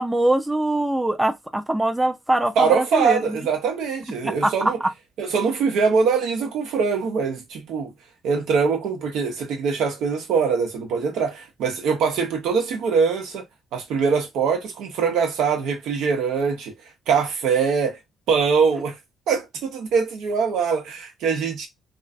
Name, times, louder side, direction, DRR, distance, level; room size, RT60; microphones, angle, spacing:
voice 1, 0.0-3.4 4.2-4.9, right 1 dB, 10° right, 0.4 m, -23 dB
voice 2, 2.6-4.8 5.2-7.9 8.2-13.4 13.7-16.7 17.1-18.0 18.3-19.0 19.3-21.7, right 5 dB, 85° right, 0.7 m, -23 dB
2.5 x 2.3 x 2.3 m
cardioid pair, 90°, 0 cm